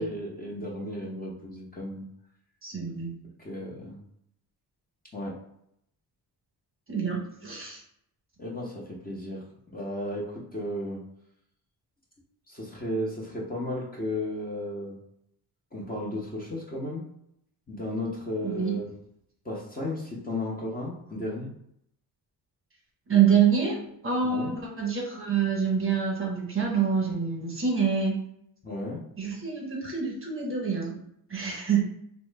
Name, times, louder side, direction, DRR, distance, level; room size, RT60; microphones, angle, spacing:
voice 1, 0.0-2.1 3.4-4.0 5.1-5.4 8.4-9.5 9.7-11.0 12.5-15.0 15.7-17.0 17.7-18.9 19.4-21.5 24.2-24.5 28.6-29.0, left 1 dB, 20° left, -4 dB, 0.7 m, -34 dB
voice 2, 2.6-3.1 6.9-7.8 18.4-18.8 23.1-23.8 24.0-28.2 29.2-31.0 31.3-31.8, right 7 dB, 30° right, -2 dB, 0.9 m, -26 dB
2.9 x 2.1 x 3.3 m, 0.73 s
cardioid pair, 105°, 42 cm